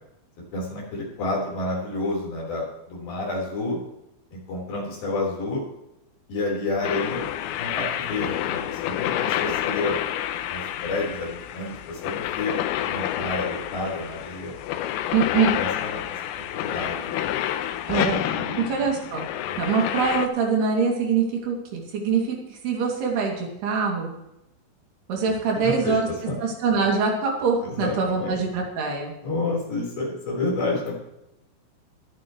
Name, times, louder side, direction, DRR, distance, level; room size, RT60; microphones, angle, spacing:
voice 1, 0.5-3.8 4.3-5.6 6.3-7.3 7.6-10.0 10.5-12.6 12.8-14.5 15.6-17.3 18.3-18.7 19.4-19.6 25.6-26.0 26.3-26.4 27.6-28.4 29.2-31.0, left 2 dB, 50° left, -4 dB, 6.0 m, -30 dB
sound 1, 6.8-20.3, left 12 dB, 80° left, 2.9 m, -29 dB
voice 2, 15.1-15.6 17.9-18.2 18.6-19.3 19.6-24.1 25.1-26.1 26.4-29.1, right 5 dB, 60° right, 0 dB, 4.5 m, -24 dB
23.5 x 9.4 x 3.2 m, 0.87 s
omnidirectional pair, 5.6 m